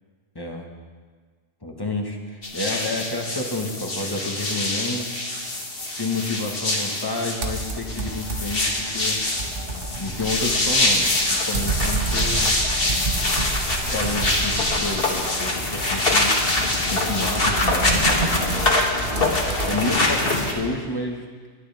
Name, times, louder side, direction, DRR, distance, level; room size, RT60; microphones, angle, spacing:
voice 1, 0.3-0.7 1.6-5.4 5.8-9.6 10.0-12.5 13.9-16.4 16.9-18.6 19.7-21.2, left 2 dB, 20° left, 1 dB, 1.6 m, -30 dB
sound 1, 2.4-20.5, left 2 dB, 55° left, 1.9 m, -24 dB
sound 2, 7.4-8.7 9.0-15.2 16.7-20.0, right 3 dB, 55° right, 1.4 m, -29 dB
21.5 x 11.0 x 3.6 m, 1.5 s
omnidirectional pair, 1.2 m